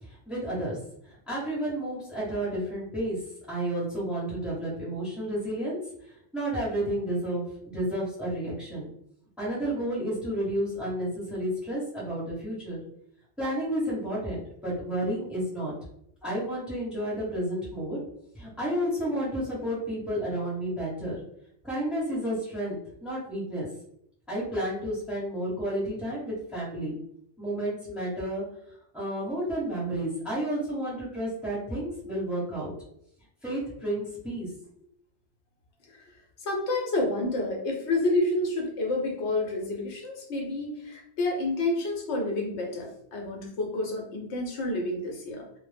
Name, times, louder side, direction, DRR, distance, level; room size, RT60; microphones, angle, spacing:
voice 1, 0.0-8.9 9.4-12.8 13.4-15.7 16.2-18.0 18.3-21.2 21.6-23.7 24.3-26.9 27.4-28.4 28.9-32.7 33.4-34.5, right 1 dB, ahead, -6 dB, 0.8 m, -31 dB
voice 2, 36.4-45.6, left 2 dB, 75° left, 0 dB, 0.9 m, -29 dB
2.0 x 2.0 x 3.2 m, 0.73 s
omnidirectional pair, 1.2 m